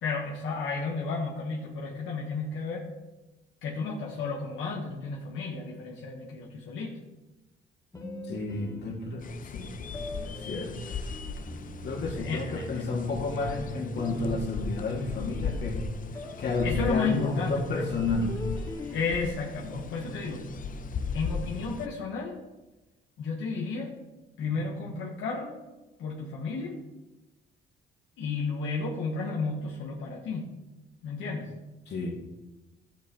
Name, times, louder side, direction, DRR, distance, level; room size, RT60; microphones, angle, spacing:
voice 1, 0.0-2.9 3.6-7.0 12.0-12.9 16.6-17.9 18.9-20.4 21.1-22.4 23.2-23.9 24.4-25.5 26.0-26.8 28.2-30.5 31.0-31.5, left 4 dB, 80° left, -3 dB, 1.3 m, -32 dB
sound 1, 7.9-9.4 9.9-22.1, left 1 dB, 15° left, 1.8 m, -42 dB
voice 2, 8.3-9.8 10.2-10.8 11.8-15.9 16.4-18.4 31.9-32.1, left 3 dB, 60° left, 0 dB, 2.1 m, -31 dB
sound 2, 9.2-21.9, left 5 dB, 45° left, 0.6 m, -37 dB
12.0 x 7.4 x 3.0 m, 1.1 s
cardioid pair, 90°, 20 cm